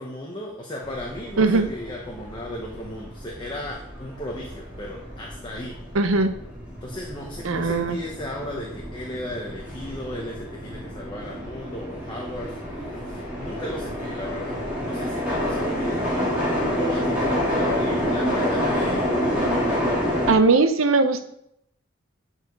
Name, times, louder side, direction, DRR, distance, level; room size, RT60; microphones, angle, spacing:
voice 1, 0.0-5.7 6.8-12.6 12.9-14.6 14.8-16.3 16.8-19.1, left 1 dB, 20° left, -2 dB, 1.1 m, -35 dB
sound 1, 0.8-20.3, equal, 5° right, 2.6 m, -28 dB
voice 2, 5.9-6.4 7.4-8.0 20.3-21.2, right 3 dB, 70° right, 9 dB, 0.7 m, -19 dB
8.7 x 4.9 x 5.3 m, 0.77 s
head